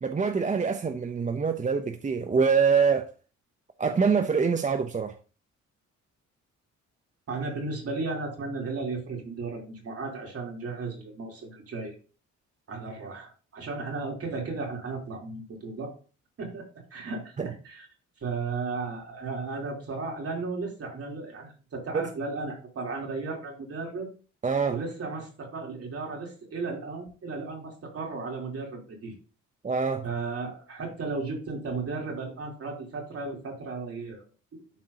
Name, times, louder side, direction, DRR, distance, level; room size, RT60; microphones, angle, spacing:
voice 1, 0.0-3.1 3.8-5.1 17.4-17.5 21.9-22.0 24.4-24.8 29.6-30.0, right 5 dB, 25° right, 0.6 m, -25 dB
voice 2, 7.3-11.9 12.7-15.9 16.4-17.9 18.2-24.1 24.7-29.1 30.0-34.2 34.5-34.6, right 3 dB, 50° right, 3.3 m, -35 dB
11.5 x 4.5 x 2.8 m
cardioid pair, 90°, 30 cm